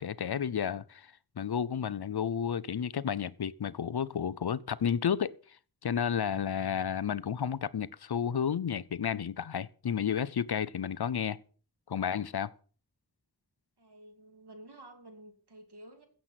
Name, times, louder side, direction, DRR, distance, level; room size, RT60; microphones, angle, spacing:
voice 1, 0.0-5.4 5.8-11.4 11.9-12.5, left 8 dB, 75° left, 0.7 m, -32 dB
voice 2, 13.8-16.1, right 1 dB, 80° right, 2.8 m, -52 dB
15.5 x 7.6 x 5.8 m
wide cardioid pair, 55°, 39 cm